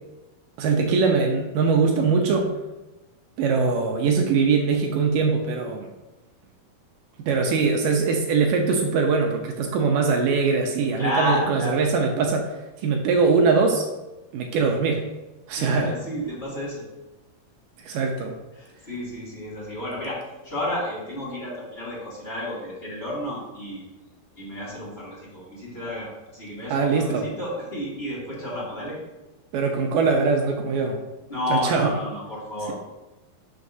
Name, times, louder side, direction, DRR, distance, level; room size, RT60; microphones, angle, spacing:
voice 1, 0.6-2.5 3.4-5.9 7.2-12.5 12.8-13.9 14.3-15.0 15.5-15.9 17.8-18.4 26.7-27.3 29.5-31.0 31.5-31.9, right 4 dB, 75° right, 2 dB, 2.2 m, -22 dB
voice 2, 11.0-11.8 15.5-16.8 18.6-23.8 24.4-29.0 31.3-32.7, left 1 dB, 20° left, -7 dB, 2.3 m, -31 dB
11.5 x 6.3 x 2.7 m, 1.1 s
omnidirectional pair, 4.4 m